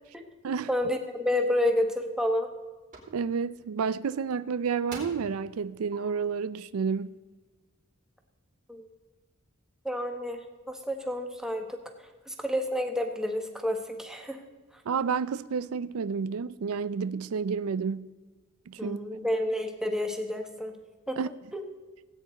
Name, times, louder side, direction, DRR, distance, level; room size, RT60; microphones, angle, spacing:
voice 1, 0.7-2.5 8.7-8.9 9.8-10.4 10.7-11.8 12.3-14.4 18.8-20.8 21.1-21.2 21.5-21.6, left 1 dB, 5° right, 1.2 m, -29 dB
sound 1, 1.6-1.7 2.2-2.5 2.9-3.1 4.3-4.4 4.9-5.3 5.9-6.0, right 3 dB, 40° right, 3.8 m, -43 dB
voice 2, 3.1-7.2 14.9-18.1 18.7-19.0 21.2-21.3, right 6 dB, 85° right, 0.4 m, -30 dB
17.5 x 9.1 x 4.0 m
head